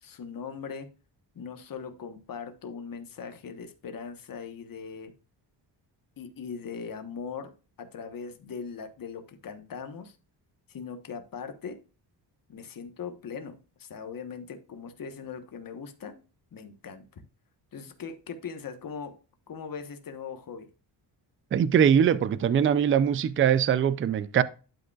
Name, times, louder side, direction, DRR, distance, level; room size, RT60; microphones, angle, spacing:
voice 1, 0.0-0.9 1.3-5.1 6.2-7.5 7.8-10.2 10.7-11.8 12.5-16.2 16.5-17.2 17.7-19.2 19.5-20.7, left 6 dB, 50° left, 1.2 m, -40 dB
voice 2, 21.5-24.4, right 8 dB, 30° right, 0.4 m, -22 dB
11.5 x 5.2 x 2.4 m
wide cardioid pair, 145°, 43 cm